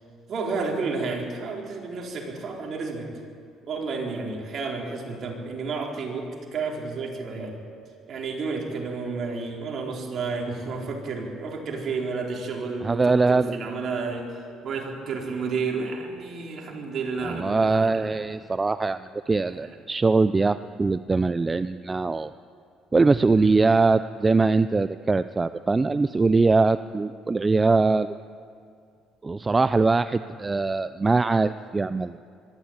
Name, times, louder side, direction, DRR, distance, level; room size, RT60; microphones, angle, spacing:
voice 1, 0.3-3.1 3.6-7.6 8.1-14.3 14.6-18.3 19.6-19.8 23.4-23.5, right 4 dB, 50° right, 0 dB, 4.1 m, -31 dB
voice 2, 12.8-13.5 17.2-19.0 19.3-22.3 22.9-28.2 29.2-32.2, right 3 dB, 20° right, 13 dB, 0.5 m, -22 dB
23.0 x 13.5 x 8.9 m, 2.3 s
cardioid pair, 105°, 0 cm